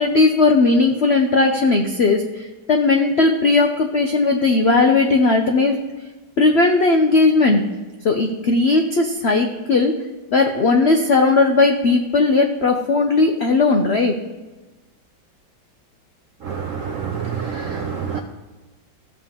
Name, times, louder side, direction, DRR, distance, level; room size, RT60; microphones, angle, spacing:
voice 1, 0.0-5.8 6.4-7.6 8.0-9.9 10.3-14.2, left 3 dB, 75° left, 4 dB, 0.6 m, -17 dB
voice 2, 16.4-18.2, right 6 dB, 70° right, 4 dB, 0.7 m, -27 dB
14.5 x 7.1 x 3.7 m, 1.2 s
omnidirectional pair, 2.1 m